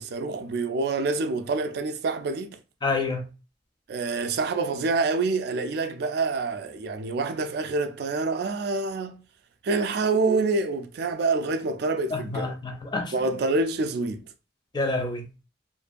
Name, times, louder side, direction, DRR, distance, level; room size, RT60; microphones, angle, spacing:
voice 1, 0.0-2.6 3.9-9.2 9.6-12.6 13.1-14.2, right 3 dB, 60° right, 0.3 m, -27 dB
voice 2, 2.8-3.3 12.1-13.1 14.7-15.3, left 3 dB, 25° left, 0.4 m, -28 dB
2.6 x 2.2 x 2.4 m
head